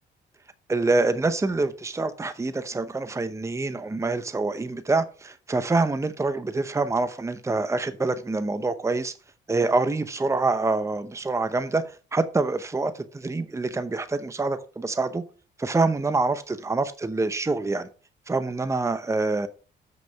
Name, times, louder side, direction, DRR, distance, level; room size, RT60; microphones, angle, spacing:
voice 1, 0.7-9.1 9.5-11.8 12.1-15.2 15.6-17.9 18.3-19.5, right 3 dB, 15° right, 0.8 m, -26 dB
7.6 x 6.3 x 5.8 m
cardioid pair, 90°, 20 cm